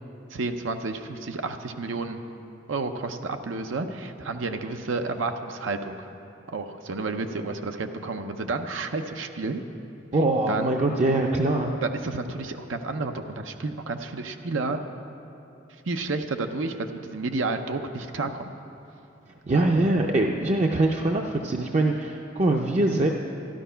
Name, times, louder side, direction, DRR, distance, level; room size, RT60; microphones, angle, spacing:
voice 1, 0.3-2.2 2.7-6.1 6.5-9.6 10.5-10.7 11.8-14.8 15.9-18.5 19.5-19.6, right 3 dB, 85° right, 6 dB, 0.7 m, -31 dB
voice 2, 10.1-11.7 19.5-23.1, right 2 dB, 35° right, 1 dB, 0.5 m, -23 dB
12.5 x 12.0 x 5.6 m, 2.8 s
head